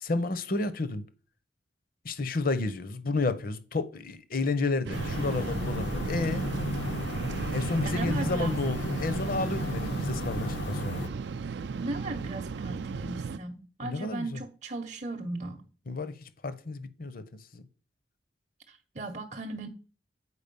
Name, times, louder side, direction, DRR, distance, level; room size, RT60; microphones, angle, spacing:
voice 1, 0.0-1.0 2.0-6.5 7.5-11.0 13.8-14.4 15.9-16.1 16.4-17.2 17.5-17.6, left 3 dB, 55° left, 0.8 m, -31 dB
sound 1, 4.8-13.4, right 5 dB, 70° right, 0.4 m, -35 dB
sound 2, 4.9-11.1, left 1 dB, 80° left, 0.8 m, -34 dB
voice 2, 7.8-8.6 11.7-15.6 18.7-19.7, right 2 dB, 40° right, 0.7 m, -37 dB
8.3 x 4.8 x 5.3 m
head